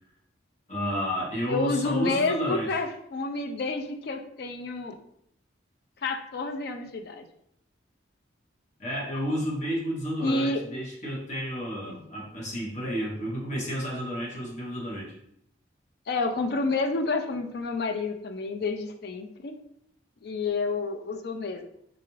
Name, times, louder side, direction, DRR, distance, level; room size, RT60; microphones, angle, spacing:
voice 1, 0.7-2.7 8.8-15.2, equal, 40° left, -4 dB, 1.0 m, -31 dB
voice 2, 1.5-5.0 6.0-7.3 10.2-10.6 11.8-12.0 16.1-19.5 20.2-21.6, left 3 dB, 55° left, 6 dB, 0.4 m, -29 dB
3.8 x 2.4 x 3.1 m, 0.73 s
head